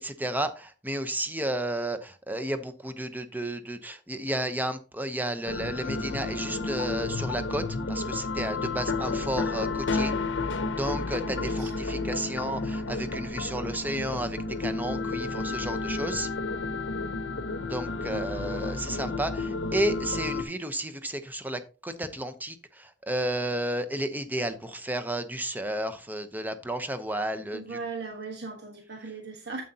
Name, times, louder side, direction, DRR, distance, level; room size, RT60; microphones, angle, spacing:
voice 1, 0.0-10.1 10.7-16.3 17.7-27.8, right 1 dB, 10° right, 10 dB, 0.8 m, -32 dB
sound 1, 5.5-20.4, left 3 dB, 80° left, 0.9 m, -31 dB
voice 2, 11.3-11.7 18.1-18.5 27.5-29.6, right 4 dB, 60° right, 2 dB, 1.3 m, -39 dB
9.2 x 7.7 x 2.8 m, 0.33 s
head